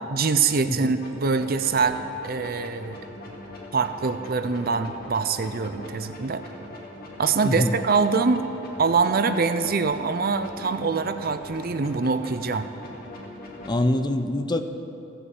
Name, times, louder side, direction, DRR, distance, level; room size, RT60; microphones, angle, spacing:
voice 1, 0.1-3.0 3.7-6.4 7.2-8.5 8.8-12.7, right 4 dB, 50° right, 10 dB, 0.6 m, -24 dB
sound 1, 1.0-13.8, left 1 dB, 50° left, 2.5 m, -41 dB
voice 2, 7.4-7.8 13.7-14.6, left 1 dB, 20° left, 8 dB, 0.6 m, -24 dB
16.0 x 7.9 x 8.2 m, 2.9 s
head